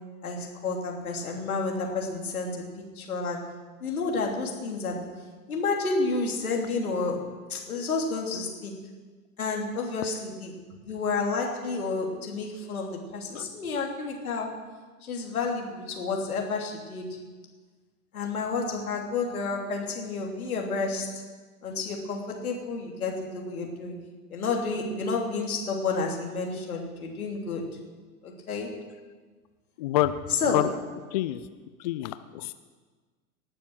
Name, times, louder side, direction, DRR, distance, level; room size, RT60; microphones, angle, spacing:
voice 1, 0.2-2.6 2.9-3.4 3.8-5.0 5.5-7.2 7.5-8.7 9.4-10.5 10.8-12.9 13.1-14.5 15.0-17.1 18.1-21.2 21.6-23.9 24.3-27.6 28.2-28.7 30.3-30.6, left 4 dB, 70° left, 1 dB, 3.1 m, -30 dB
voice 2, 29.8-30.1 30.5-30.7 31.1-31.4 31.8-32.5, left 15 dB, 30° left, 13 dB, 0.3 m, -26 dB
19.0 x 7.2 x 6.3 m, 1.4 s
figure-of-eight pair, 95°, 44 cm